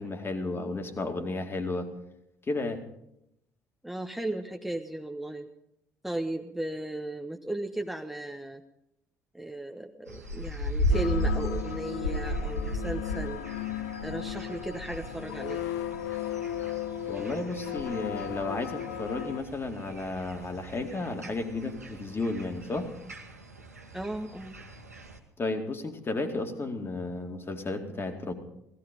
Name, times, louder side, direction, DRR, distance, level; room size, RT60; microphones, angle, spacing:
voice 1, 0.0-1.9 2.5-2.8 17.1-22.9 25.4-28.3, left 2 dB, 30° left, 5 dB, 2.3 m, -33 dB
voice 2, 3.8-5.5 6.0-8.6 9.3-13.4 14.0-15.7 23.9-24.6, right 1 dB, 5° right, 3 dB, 1.1 m, -35 dB
sound 1, 10.1-25.2, equal, 90° right, 1.3 m, -36 dB
sound 2, 10.9-19.4, left 12 dB, 70° left, 0.7 m, -36 dB
17.0 x 15.0 x 5.2 m, 0.80 s
figure-of-eight pair, 50°, 8 cm